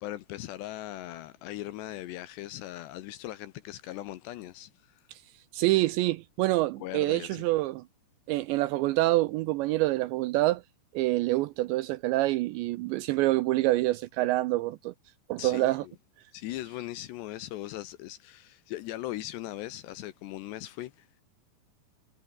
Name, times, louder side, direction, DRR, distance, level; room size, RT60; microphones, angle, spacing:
voice 1, 0.0-5.0 6.8-7.4 15.4-15.9 16.3-21.1, left 15 dB, 75° left, 2.7 m, -39 dB
voice 2, 5.5-7.8 8.3-10.6 10.9-14.9 15.3-15.8, right 18 dB, 85° right, 2.6 m, -26 dB
omnidirectional pair, 5.7 m